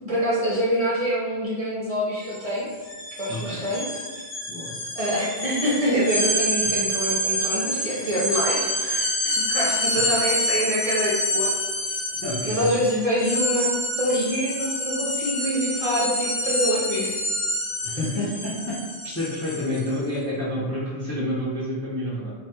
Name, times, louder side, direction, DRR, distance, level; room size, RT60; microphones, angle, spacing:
voice 1, 0.0-2.7 3.2-4.0 5.0-9.0 9.3-11.5 11.8-12.0 12.4-17.1, equal, 50° right, -6 dB, 0.5 m, -25 dB
sound 1, 2.2-2.4 2.7-19.9, equal, 40° left, 1.2 m, -27 dB
voice 2, 3.3-3.7 4.5-4.7 10.0-10.1 12.2-12.7 17.8-18.5 19.0-22.3, left 1 dB, 25° left, -7 dB, 0.3 m, -29 dB
2.8 x 2.2 x 3.2 m, 1.4 s
omnidirectional pair, 1.1 m